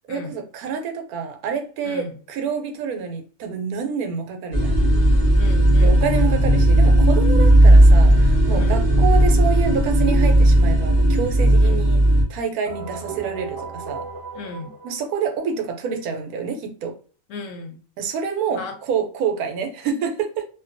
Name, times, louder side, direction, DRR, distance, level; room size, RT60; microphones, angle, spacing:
voice 1, 0.1-4.8 5.8-12.0 12.3-14.1 14.8-17.0 18.0-20.5, right 6 dB, 80° right, 5 dB, 1.1 m, -27 dB
voice 2, 1.8-2.2 5.4-6.1 8.5-8.8 11.6-11.8 14.3-14.7 17.3-17.8 18.5-18.8, left 3 dB, 65° left, 4 dB, 0.9 m, -35 dB
sound 1, 4.5-12.2, right 1 dB, 40° left, 0.5 m, -15 dB
sound 2, 12.6-15.5, right 5 dB, 65° right, 0.6 m, -35 dB
2.6 x 2.2 x 2.4 m, 0.40 s
omnidirectional pair, 1.5 m